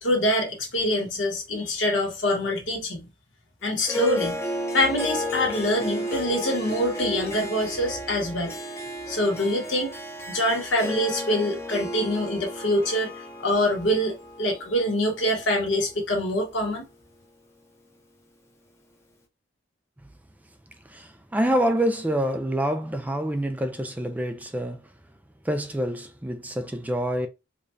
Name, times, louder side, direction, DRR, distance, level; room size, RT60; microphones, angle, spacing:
voice 1, 0.0-3.1 3.6-4.4 4.7-8.5 9.1-9.9 10.3-13.1 13.4-16.8, left 1 dB, 80° left, 1.3 m, -25 dB
Harp, 3.8-16.4, left 1 dB, 15° left, 0.7 m, -33 dB
voice 2, 20.9-24.9 25.4-27.3, right 1 dB, 10° right, 0.3 m, -26 dB
4.9 x 2.3 x 2.6 m
head